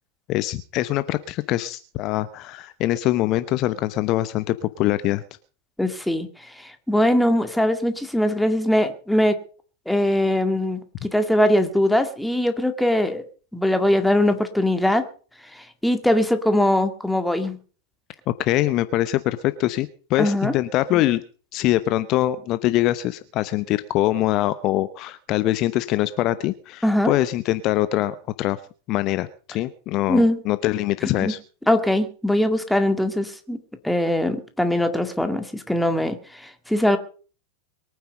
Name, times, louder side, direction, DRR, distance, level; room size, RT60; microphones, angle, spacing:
voice 1, 0.3-5.2 18.3-21.2 21.5-28.6 28.9-31.4, left 15 dB, 40° left, 14 dB, 0.8 m, -23 dB
voice 2, 5.8-9.4 9.9-13.2 13.5-15.1 15.5-17.6 20.2-20.5 20.9-21.0 26.8-27.1 30.1-30.4 31.2-31.3 31.7-33.6 33.8-37.0, left 1 dB, 5° left, 8 dB, 2.0 m, -21 dB
23.0 x 9.4 x 5.3 m, 0.40 s
figure-of-eight pair, 90°, 0 cm